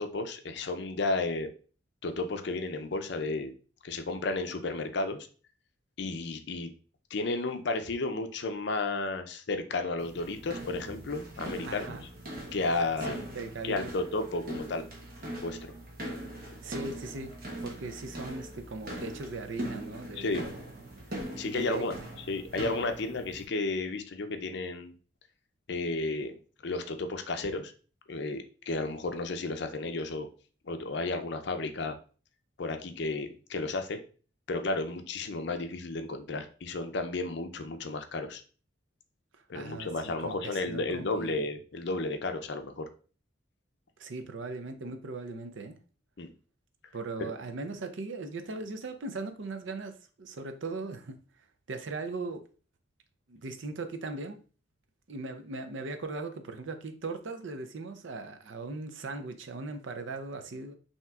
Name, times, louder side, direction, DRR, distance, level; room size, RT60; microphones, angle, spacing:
voice 1, 0.0-1.5 2.0-3.5 3.8-5.3 6.0-6.7 7.1-12.0 12.5-13.2 13.6-14.8 15.4-15.6 20.2-20.4 21.4-22.0 22.3-24.9 25.7-26.4 26.6-27.7 28.1-30.3 30.6-32.0 32.6-34.0 34.5-38.4 39.5-42.9 46.2-46.3 47.2-47.3, left 3 dB, 55° left, 0.5 m, -33 dB
sound 1, 10.0-23.4, right 1 dB, 45° right, 0.9 m, -41 dB
voice 2, 11.6-12.1 13.1-13.8 16.6-17.3 17.6-20.5 21.4-21.8 39.5-41.5 44.0-45.8 46.9-51.2 51.7-52.4 53.3-54.4 55.1-60.7, right 3 dB, 65° right, 0.5 m, -39 dB
5.6 x 2.9 x 2.3 m
head